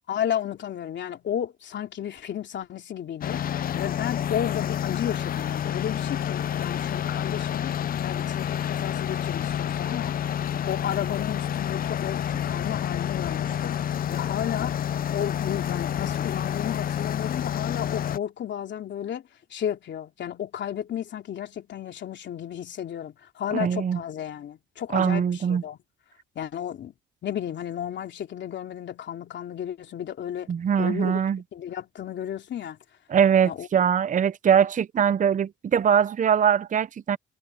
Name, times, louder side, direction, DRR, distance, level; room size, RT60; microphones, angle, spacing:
voice 1, 0.1-3.4 3.7-7.7 8.0-10.2 10.7-14.8 15.1-25.8 26.3-26.9 27.2-30.5 30.8-31.2 31.5-32.8 33.4-33.7, left 10 dB, 65° left, 3.1 m, -33 dB
sound 1, 3.2-18.2, left 9 dB, 45° left, 0.5 m, -29 dB
voice 2, 23.5-24.0 24.9-25.6 30.5-31.4 33.1-37.2, right 8 dB, 40° right, 0.7 m, -22 dB
cardioid pair, 90°, 20 cm